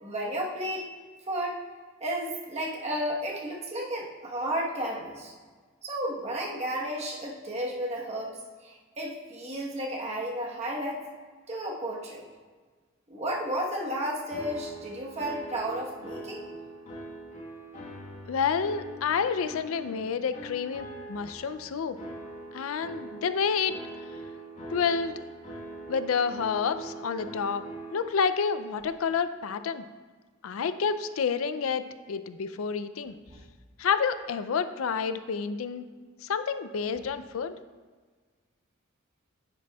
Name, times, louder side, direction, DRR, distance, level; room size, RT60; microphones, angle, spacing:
voice 1, 0.0-0.9 1.3-1.6 2.0-5.3 5.8-8.3 8.6-11.0 11.5-12.3 13.1-16.4 33.3-33.4, right 1 dB, 30° right, -3 dB, 1.1 m, -33 dB
sound 1, 14.3-28.0, right 1 dB, 30° left, 1.4 m, -43 dB
voice 2, 18.3-22.0 22.5-23.7 24.7-25.1 25.9-27.6 27.9-29.8 30.4-33.1 33.8-35.9 36.2-37.6, left 6 dB, 75° left, 12 dB, 0.4 m, -29 dB
10.0 x 7.4 x 2.3 m, 1.5 s
head